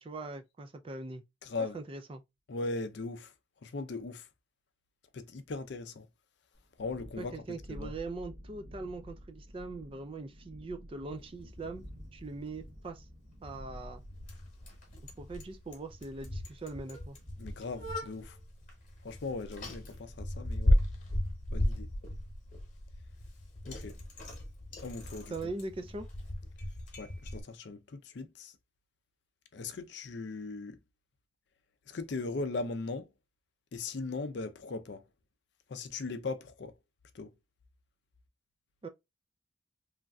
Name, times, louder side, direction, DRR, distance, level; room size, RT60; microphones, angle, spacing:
voice 1, 0.0-1.2 1.6-2.2 7.2-11.9 12.1-13.1 13.4-14.0 15.0-17.2 25.3-26.1 38.8-38.9, right 3 dB, 25° right, 0.3 m, -41 dB
voice 2, 1.4-1.8 2.5-3.3 3.6-4.3 5.1-6.1 6.8-7.9 17.4-18.4 19.0-20.8 21.5-21.9 23.7-24.0 24.8-25.5 27.0-28.6 29.5-30.8 31.9-33.1 33.7-35.1 35.7-36.8 37.1-37.3, left 3 dB, 55° left, 0.4 m, -39 dB
Thunderstorm, 6.5-18.1, equal, 50° right, 0.7 m, -52 dB
Bicycle, 11.1-27.4, left 1 dB, 40° left, 1.1 m, -36 dB
3.1 x 2.5 x 2.2 m
head